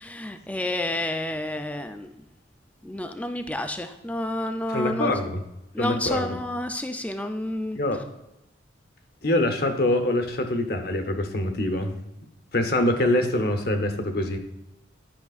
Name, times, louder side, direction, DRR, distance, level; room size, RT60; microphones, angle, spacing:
voice 1, 0.0-2.1 2.8-5.1 5.7-7.8, left 1 dB, 5° left, 7 dB, 0.4 m, -30 dB
voice 2, 4.7-5.4 5.8-6.4 7.7-8.0 9.2-11.9 12.5-14.4, left 1 dB, 50° left, 6 dB, 0.8 m, -24 dB
10.5 x 6.0 x 2.4 m, 0.89 s
head